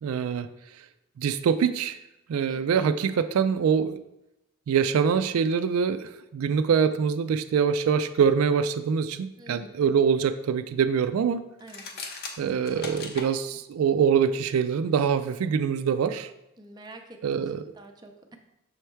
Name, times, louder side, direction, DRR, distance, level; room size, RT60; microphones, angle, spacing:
voice 1, 0.0-0.5 1.2-2.0 2.3-4.0 4.7-11.4 12.4-16.3 17.2-17.6, right 7 dB, 85° right, 11 dB, 0.3 m, -24 dB
voice 2, 2.5-2.8 9.4-9.8 11.6-11.9 16.6-18.4, right 2 dB, 20° right, 3 dB, 0.5 m, -48 dB
sound 1, 11.6-13.3, left 4 dB, 45° left, 0.7 m, -38 dB
6.2 x 3.4 x 4.4 m, 0.88 s
head